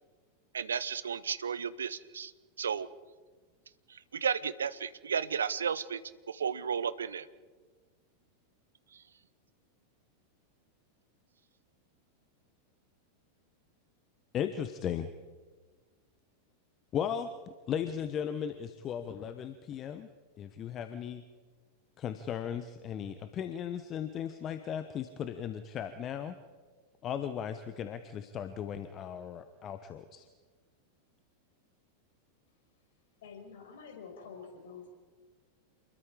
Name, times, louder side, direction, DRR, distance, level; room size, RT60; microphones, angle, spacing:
voice 1, 0.5-2.3 2.6-2.9 3.9-6.0 6.3-7.3 8.9-9.0, right 7 dB, 70° right, 16 dB, 0.9 m, -33 dB
voice 2, 14.3-15.1 16.9-20.1 20.4-21.2 22.0-26.4 27.0-30.3, left 8 dB, 30° left, 11 dB, 1.1 m, -36 dB
voice 3, 33.2-34.9, left 6 dB, 55° left, 3 dB, 5.5 m, -48 dB
28.5 x 21.5 x 5.0 m, 1.4 s
figure-of-eight pair, 90°, 0 cm